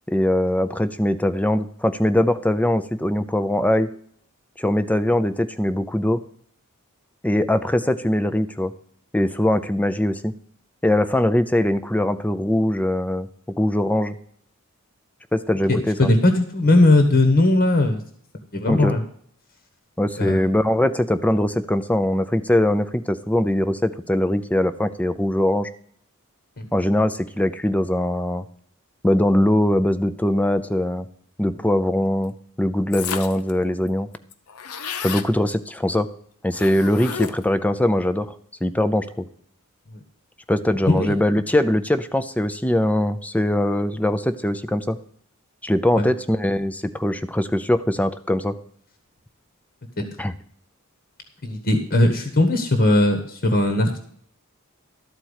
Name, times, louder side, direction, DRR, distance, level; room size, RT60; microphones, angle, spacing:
voice 1, 0.1-3.9 4.6-6.2 7.2-8.7 9.1-10.3 10.8-13.3 13.6-14.2 15.3-16.1 18.7-18.9 20.0-25.7 26.7-28.5 29.0-31.1 31.4-32.3 32.6-34.1 35.0-36.1 36.4-38.3 38.6-39.3 40.5-45.0 45.6-48.5 50.2-50.3, left 1 dB, 5° left, 10 dB, 0.5 m, -21 dB
voice 2, 15.7-18.0 18.5-19.0 20.2-20.5 26.6-26.7 40.9-41.2 45.9-46.1 50.0-50.1 51.4-54.0, left 2 dB, 50° left, 6 dB, 1.3 m, -18 dB
sound 1, 32.9-33.5 33.9-34.0 34.1-35.3 36.5-37.6, left 7 dB, 80° left, 0.7 m, -32 dB
13.0 x 4.5 x 8.1 m, 0.63 s
head